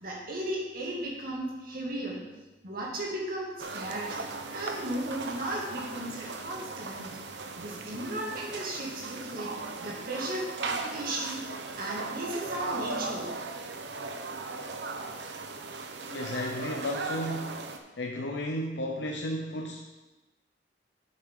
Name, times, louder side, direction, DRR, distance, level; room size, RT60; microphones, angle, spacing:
voice 1, 0.0-2.2 2.6-4.2 4.5-7.1 7.6-9.5 9.8-11.4 11.7-13.3, right 1 dB, 55° right, -3 dB, 2.2 m, -35 dB
sound 1, 3.6-17.8, right 3 dB, 75° right, 0.7 m, -38 dB
voice 2, 16.1-17.6 18.0-19.9, left 1 dB, 75° left, 1 dB, 0.7 m, -33 dB
9.1 x 7.3 x 3.7 m, 1.1 s
head